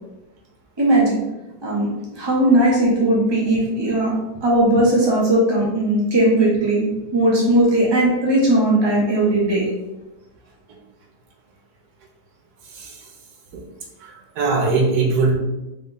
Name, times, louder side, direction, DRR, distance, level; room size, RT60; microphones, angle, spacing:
voice 1, 0.8-1.2 1.6-4.1 4.4-6.8 7.1-9.7, right 1 dB, 35° right, -5 dB, 0.4 m, -18 dB
voice 2, 14.0-15.4, right 3 dB, 65° right, 0 dB, 1.2 m, -20 dB
3.7 x 2.6 x 3.6 m, 0.98 s
omnidirectional pair, 1.9 m